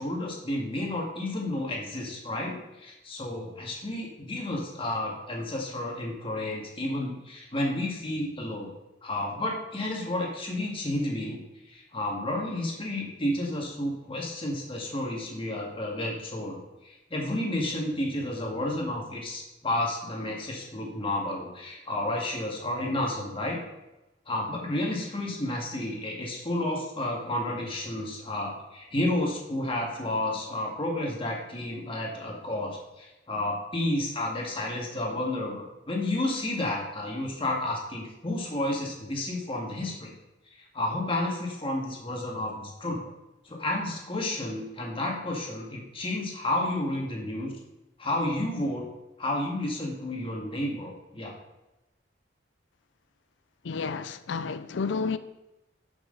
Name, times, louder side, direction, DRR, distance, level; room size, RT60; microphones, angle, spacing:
voice 1, 0.0-8.7 9.0-11.4 11.7-23.6 24.3-40.1 40.5-43.0 43.4-47.5 48.0-48.9 49.2-51.3, left 1 dB, 30° left, -1 dB, 1.9 m, -31 dB
voice 2, 53.6-55.2, left 4 dB, 70° left, 13 dB, 0.5 m, -31 dB
11.0 x 6.1 x 3.9 m, 0.99 s
head